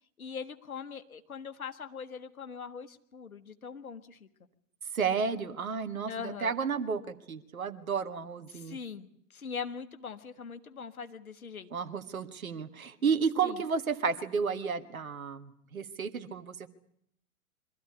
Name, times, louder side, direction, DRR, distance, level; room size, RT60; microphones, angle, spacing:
voice 1, 0.2-4.3 6.0-6.5 8.5-11.7 13.4-13.6, left 6 dB, 75° left, 10 dB, 1.6 m, -41 dB
voice 2, 4.9-8.8 11.7-16.7, right 6 dB, 70° right, 11 dB, 1.7 m, -32 dB
24.0 x 14.0 x 10.0 m, 0.72 s
figure-of-eight pair, 105°, 43 cm